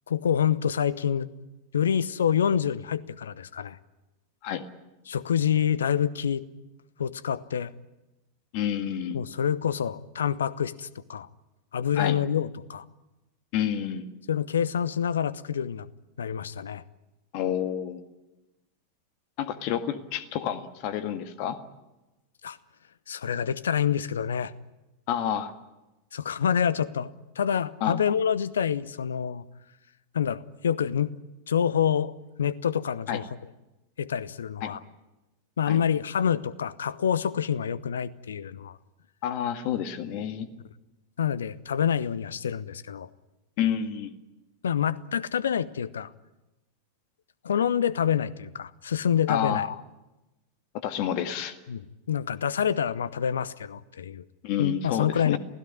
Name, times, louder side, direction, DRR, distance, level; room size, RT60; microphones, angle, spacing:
voice 1, 0.1-1.3 1.7-3.8 5.1-6.4 7.0-7.7 9.1-11.3 11.7-12.8 14.3-15.9 16.2-16.8 22.4-22.6 23.1-24.5 26.1-27.1 27.4-29.4 30.1-31.1 31.5-32.1 32.4-33.3 34.0-34.8 35.6-38.8 41.2-43.1 44.6-46.1 47.4-49.8 51.7-51.8 52.1-54.2 54.6-55.4, left 8 dB, 65° left, 19 dB, 0.9 m, -27 dB
voice 2, 8.5-9.2 12.0-12.2 13.5-14.0 17.3-18.0 19.4-21.6 25.1-25.5 27.8-28.0 33.1-33.2 34.6-34.7 35.7-35.8 39.2-40.5 43.6-44.1 49.3-49.6 50.7-51.6 54.4-55.4, left 9 dB, 45° left, 10 dB, 1.9 m, -29 dB
27.5 x 16.5 x 9.9 m, 1.0 s
figure-of-eight pair, 90°, 0 cm